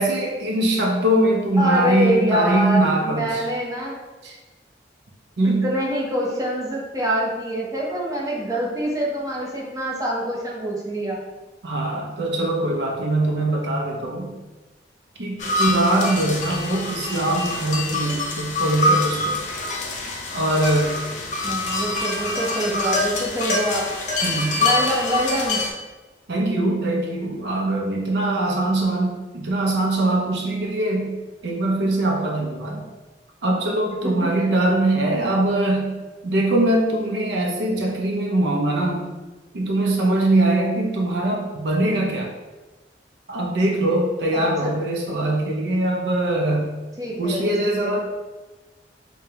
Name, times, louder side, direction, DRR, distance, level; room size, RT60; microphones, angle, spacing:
voice 1, 0.0-3.4 4.2-4.4 5.4-5.7 11.6-14.3 15.2-19.4 20.3-20.9 24.2-24.6 26.3-31.1 31.4-32.8 33.4-35.9 36.2-39.0 39.5-42.3 43.3-46.7 47.2-48.0, right 1 dB, 75° right, 0 dB, 0.6 m, -22 dB
voice 2, 1.6-4.0 5.4-11.2 21.4-23.9 24.6-25.6 34.0-34.5 44.3-44.7 47.0-47.9, equal, 20° right, -4 dB, 0.7 m, -25 dB
sound 1, 15.4-25.7, left 2 dB, 45° left, 0.6 m, -25 dB
5.1 x 2.2 x 2.8 m, 1.2 s
head